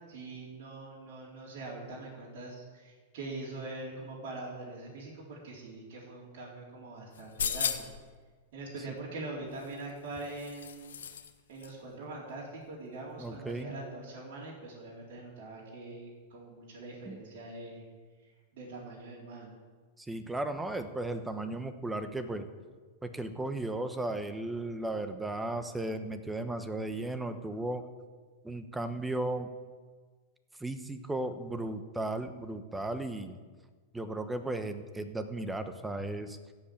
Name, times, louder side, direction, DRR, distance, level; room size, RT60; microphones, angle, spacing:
voice 1, 0.1-7.9 8.5-11.0 11.5-17.8 18.5-19.5, right 2 dB, 60° right, -6 dB, 3.9 m, -43 dB
sound 1, 7.1-8.1 9.6-11.3 11.6-11.7, left 8 dB, 85° left, 1.2 m, -36 dB
voice 2, 13.2-13.8 17.1-17.2 20.0-22.5 23.0-27.8 28.4-29.5 30.6-33.4 33.9-36.4, right 2 dB, 10° right, 9 dB, 1.1 m, -35 dB
15.0 x 5.6 x 8.9 m, 1.5 s
hypercardioid pair, 115°, 0 cm